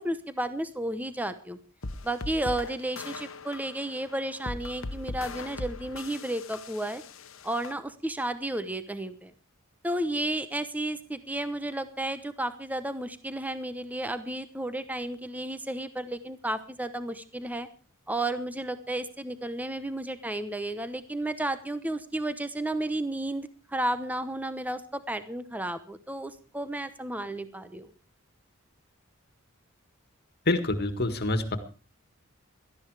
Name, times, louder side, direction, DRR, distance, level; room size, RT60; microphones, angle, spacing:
voice 1, 0.0-1.6 2.0-7.0 7.4-9.3 9.8-17.7 18.1-27.9, right 1 dB, 10° right, 11 dB, 0.9 m, -32 dB
sound 1, 1.8-7.7, left 3 dB, 70° left, 1.3 m, -40 dB
voice 2, 30.5-31.6, left 2 dB, 50° left, 10 dB, 1.8 m, -26 dB
18.0 x 13.0 x 4.9 m, 0.35 s
head